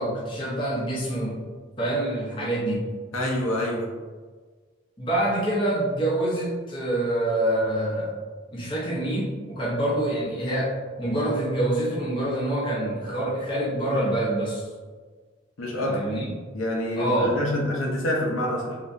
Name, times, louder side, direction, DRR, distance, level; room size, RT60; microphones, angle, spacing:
voice 1, 0.0-1.4 1.8-2.9 5.0-8.1 8.5-14.7 15.9-16.3 17.0-17.4, right 1 dB, 25° left, -6 dB, 0.8 m, -26 dB
voice 2, 3.1-3.9 15.6-16.0 16.5-18.8, left 1 dB, 90° left, -1 dB, 0.7 m, -26 dB
3.5 x 2.9 x 2.6 m, 1.4 s
head